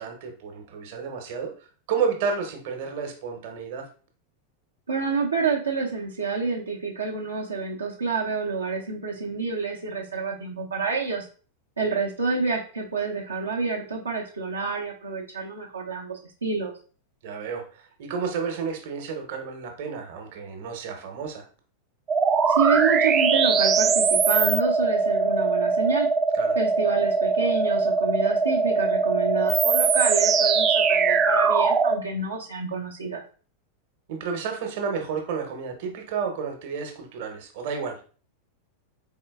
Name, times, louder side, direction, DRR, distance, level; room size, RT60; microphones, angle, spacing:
voice 1, 0.0-1.5 1.9-3.8 17.2-21.4 26.3-26.6 34.1-38.0, right 6 dB, 50° right, 4 dB, 0.9 m, -31 dB
voice 2, 4.9-11.3 11.8-16.7 22.5-26.1 26.5-33.2, right 4 dB, 75° right, -3 dB, 0.7 m, -28 dB
sound 1, 22.1-32.0, right 5 dB, 25° right, 0.3 m, -21 dB
4.4 x 3.6 x 2.3 m, 0.40 s
figure-of-eight pair, 90°, 0 cm